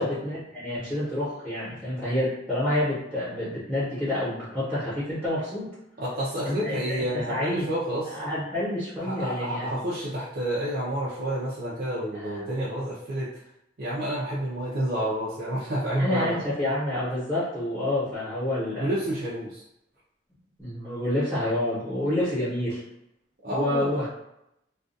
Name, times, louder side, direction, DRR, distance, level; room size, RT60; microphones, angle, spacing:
voice 1, 0.0-5.7 6.4-7.6 8.1-9.7 12.1-12.4 16.0-18.9 20.6-22.8 23.5-24.1, left 1 dB, 5° right, -13 dB, 0.9 m, -28 dB
voice 2, 6.0-8.2 9.0-13.3 13.8-16.4 18.8-19.6 23.4-24.0, right 1 dB, 50° right, -8 dB, 0.5 m, -29 dB
2.3 x 2.3 x 2.6 m, 0.83 s
head